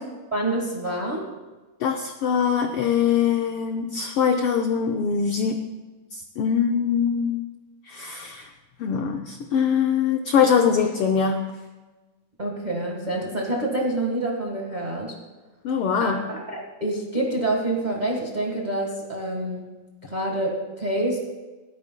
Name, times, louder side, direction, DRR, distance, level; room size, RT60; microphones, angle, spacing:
voice 1, 0.3-1.3 12.4-15.1 16.0-19.7 20.0-21.2, right 1 dB, 25° right, 0 dB, 0.9 m, -27 dB
voice 2, 1.8-5.6 6.1-7.4 7.9-8.5 8.8-11.4 15.6-16.2, left 7 dB, 80° left, 4 dB, 1.2 m, -23 dB
28.0 x 9.4 x 2.2 m, 1.2 s
omnidirectional pair, 3.3 m